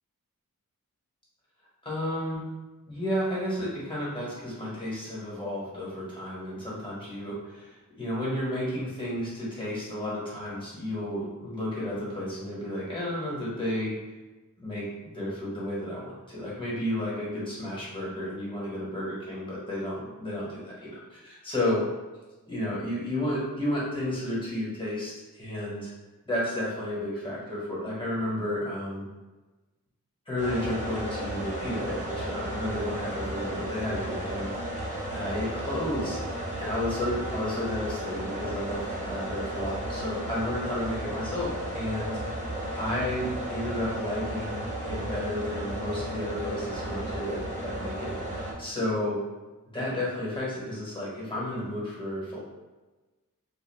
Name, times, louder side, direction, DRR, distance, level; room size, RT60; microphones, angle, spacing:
voice 1, 1.8-2.4 2.9-13.9 14.6-21.8 22.5-25.9 26.2-29.0 30.3-42.2 42.7-49.2 49.7-52.4, left 1 dB, 15° left, -8 dB, 1.3 m, -32 dB
sound 1, 30.4-48.5, right 1 dB, 25° right, 0.8 m, -34 dB
2.3 x 2.3 x 3.3 m, 1.2 s
wide cardioid pair, 65°, 34 cm